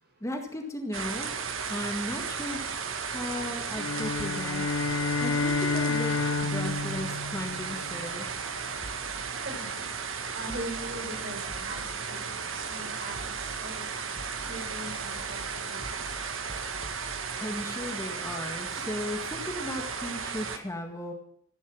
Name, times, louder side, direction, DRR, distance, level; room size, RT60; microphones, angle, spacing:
voice 1, 0.2-1.4 1.7-8.4 17.4-21.1, left 1 dB, 15° left, 3 dB, 1.9 m, -36 dB
sound 1, 0.9-20.6, right 5 dB, 85° right, 1.6 m, -35 dB
sound 2, 3.8-8.2, left 4 dB, 85° left, 0.7 m, -30 dB
sound 3, 8.8-9.7 10.0-10.2 10.5-11.0 11.4-12.4 12.7-12.9 13.2-13.7 14.0-17.3, equal, 20° right, 1.0 m, -47 dB
voice 2, 9.4-9.9 10.3-12.2 12.5-13.3 13.6-13.8 14.4-15.8, right 1 dB, 55° right, 4 dB, 4.4 m, -40 dB
15.0 x 11.5 x 7.2 m, 0.67 s
head